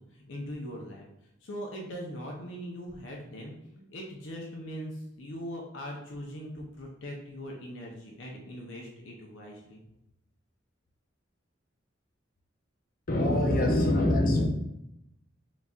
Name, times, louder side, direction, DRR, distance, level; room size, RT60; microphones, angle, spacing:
voice 1, 0.1-1.0 1.4-9.8, equal, 90° left, -1 dB, 0.7 m, -41 dB
voice 2, 13.1-14.4, left 1 dB, 50° left, 0 dB, 0.8 m, -24 dB
4.1 x 3.8 x 2.4 m, 0.83 s
head